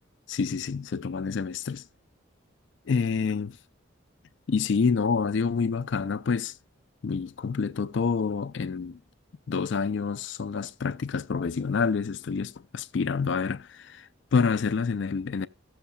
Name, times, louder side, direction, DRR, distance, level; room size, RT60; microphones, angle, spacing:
voice 1, 0.3-1.8 2.9-3.6 4.5-6.5 7.0-9.0 9.5-15.5, left 5 dB, 60° left, 0.4 m, -27 dB
17.0 x 7.0 x 2.3 m
head